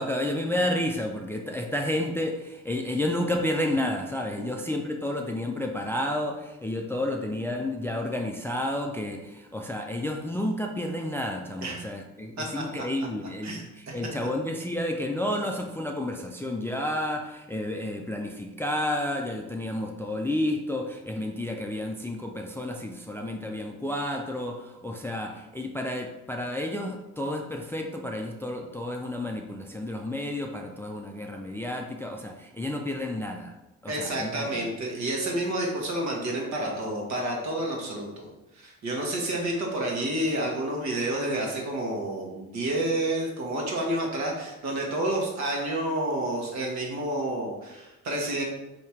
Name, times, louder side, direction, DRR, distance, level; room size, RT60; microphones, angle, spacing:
voice 1, 0.0-33.5 33.8-34.6, left 1 dB, 10° left, 2 dB, 0.3 m, -31 dB
voice 2, 13.4-14.0 33.9-38.3 38.6-48.4, right 1 dB, 65° right, -1 dB, 1.2 m, -29 dB
3.4 x 2.8 x 4.3 m, 0.99 s
cardioid pair, 90°, 30 cm